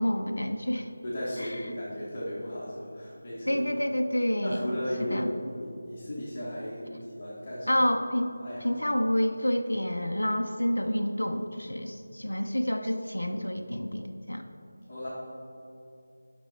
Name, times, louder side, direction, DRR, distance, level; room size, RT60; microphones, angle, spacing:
voice 1, 0.0-0.9 1.4-1.6 3.5-4.7 5.1-5.3 7.7-8.3 8.6-14.4, equal, 70° left, 5 dB, 0.6 m, -28 dB
voice 2, 1.0-3.6 4.4-7.8 8.4-8.8 14.9-15.1, equal, 30° left, -9 dB, 1.6 m, -35 dB
9.9 x 6.2 x 4.2 m, 2.6 s
figure-of-eight pair, 165°, 0 cm